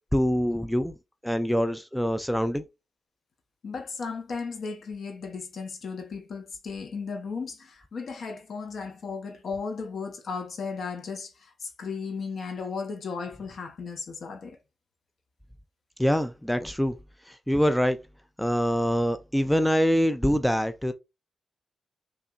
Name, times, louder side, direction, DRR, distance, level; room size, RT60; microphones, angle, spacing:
voice 1, 0.1-0.9 1.2-2.6 16.0-16.9 17.5-18.0 18.4-20.9, equal, 5° left, 0.4 m, -24 dB
voice 2, 3.6-14.6, left 5 dB, 60° left, 1.1 m, -35 dB
5.7 x 3.3 x 2.6 m
wide cardioid pair, 120°, 0 cm